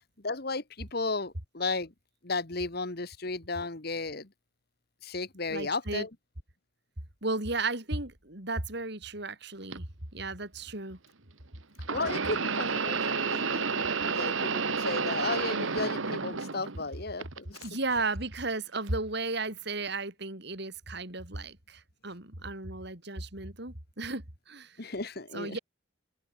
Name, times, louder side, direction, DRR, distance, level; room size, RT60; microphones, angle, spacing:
voice 1, 0.2-1.9 2.2-4.3 5.0-6.1 11.9-17.6 24.8-25.6, left 3 dB, 50° left, 1.6 m, -34 dB
voice 2, 5.5-6.1 7.2-9.9 10.1-11.0 17.6-24.8 25.3-25.6, right 3 dB, 55° right, 4.0 m, -34 dB
sound 1, 9.7-9.8 11.8-16.9 17.2-18.0 18.8-18.9 19.9-20.0, right 5 dB, 75° right, 1.7 m, -31 dB
open air
head